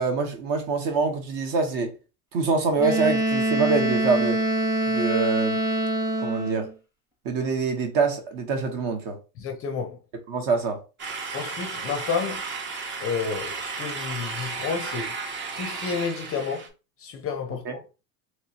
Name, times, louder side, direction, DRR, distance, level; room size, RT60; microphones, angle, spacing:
voice 1, 0.0-1.9 2.3-4.4 4.9-5.6 6.2-6.7 7.2-9.2 10.3-10.8 17.6-17.7, right 4 dB, 45° right, 1.1 m, -25 dB
Wind instrument woodwind instrument, 2.8-6.7, right 1 dB, 5° right, 0.9 m, -25 dB
voice 2, 9.4-10.0 11.3-12.4 13.0-15.1 15.6-16.7 17.0-17.8, left 6 dB, 30° left, 0.5 m, -30 dB
sound 1, 11.0-16.7, right 4 dB, 25° right, 0.6 m, -34 dB
3.0 x 3.0 x 2.8 m
supercardioid pair, 125°, 49 cm